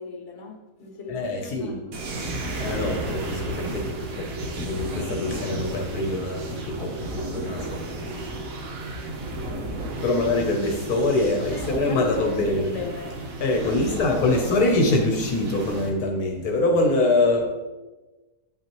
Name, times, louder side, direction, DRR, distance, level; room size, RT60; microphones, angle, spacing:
voice 1, 0.0-2.1 11.3-13.1 13.6-14.5, left 4 dB, 50° left, 2 dB, 1.3 m, -36 dB
voice 2, 1.1-1.8 2.6-8.2 10.0-12.7 13.4-17.4, left 2 dB, 75° left, 2 dB, 1.3 m, -24 dB
sound 1, 1.9-15.9, right 1 dB, 65° right, 1.3 m, -33 dB
9.1 x 5.7 x 3.0 m, 1.2 s
omnidirectional pair, 1.6 m